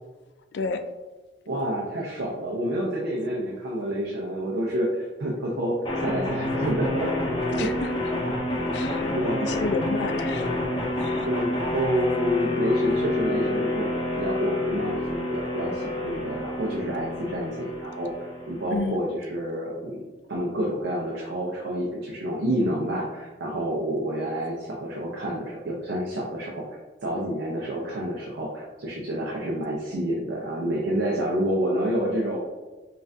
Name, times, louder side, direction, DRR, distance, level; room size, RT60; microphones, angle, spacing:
voice 1, 1.5-7.1 7.5-7.7 9.1-9.6 11.0-20.0 20.3-26.6 27.0-32.4, right 1 dB, 80° right, -3 dB, 0.6 m, -28 dB
sound 1, 5.8-18.8, left 2 dB, 25° left, 0.6 m, -28 dB
voice 2, 7.6-8.4 8.7-10.5 11.0-11.3 18.7-19.0, left 4 dB, 65° left, 7 dB, 0.4 m, -31 dB
5.4 x 2.5 x 2.6 m, 1.2 s
head